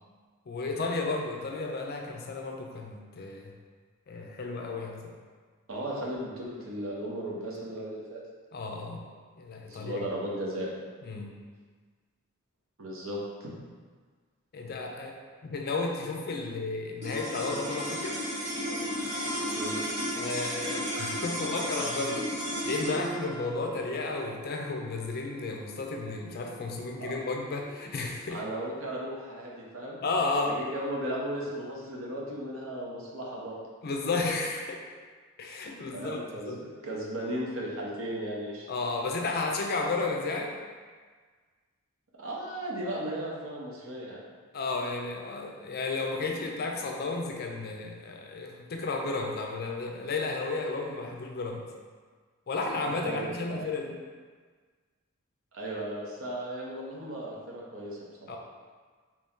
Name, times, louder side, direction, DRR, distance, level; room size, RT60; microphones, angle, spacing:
voice 1, 0.5-3.6 4.1-5.1 8.5-9.1 9.4-10.1 11.0-11.4 14.5-18.2 20.2-28.4 30.0-30.6 33.8-34.8 35.4-36.6 38.7-40.5 44.5-51.6 52.5-54.0 58.3-58.4, left 3 dB, 50° left, 2 dB, 0.4 m, -33 dB
voice 2, 5.7-8.2 9.7-10.7 12.8-13.5 19.6-19.8 27.0-27.1 28.3-30.0 30.5-33.5 35.9-38.7 42.2-44.2 52.9-53.6 55.5-58.4, right 1 dB, 80° right, -4 dB, 0.8 m, -36 dB
sound 1, 17.0-27.4, equal, 35° right, 1.4 m, -34 dB
3.0 x 2.7 x 3.6 m, 1.5 s
head